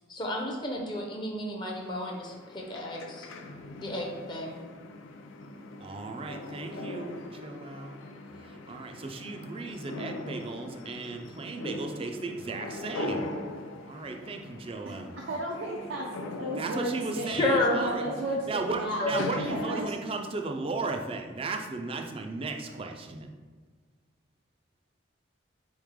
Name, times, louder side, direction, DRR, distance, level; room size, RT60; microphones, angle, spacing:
voice 1, 0.1-3.3 3.8-4.6 17.4-17.7 19.0-19.3, left 1 dB, 25° left, 0 dB, 0.5 m, -31 dB
sound 1, 1.7-19.9, left 2 dB, 85° left, 0.4 m, -41 dB
voice 2, 5.8-8.0 8.4-13.3 13.8-15.1 16.6-18.1 18.5-23.3, right 3 dB, 30° right, 3 dB, 0.3 m, -35 dB
voice 3, 14.9-17.3 17.7-19.9, right 1 dB, 85° right, -3 dB, 0.5 m, -34 dB
4.1 x 3.2 x 3.6 m, 1.5 s
head